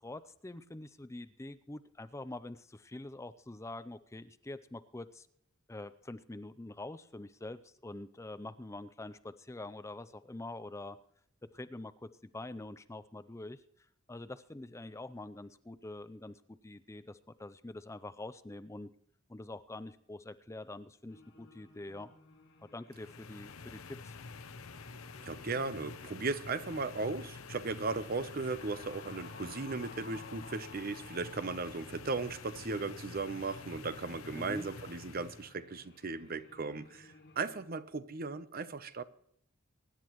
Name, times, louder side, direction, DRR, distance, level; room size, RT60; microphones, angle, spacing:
voice 1, 0.0-5.3 5.7-11.0 11.5-18.9 19.3-22.1 22.6-24.2 34.3-34.7, left 2 dB, 15° left, 0.5 m, -45 dB
sound 1, 21.1-37.6, left 3 dB, 55° left, 2.0 m, -57 dB
sound 2, 22.9-35.5, left 4 dB, 85° left, 0.8 m, -48 dB
voice 2, 25.2-39.0, right 3 dB, 45° right, 0.7 m, -37 dB
24.0 x 10.5 x 3.1 m
head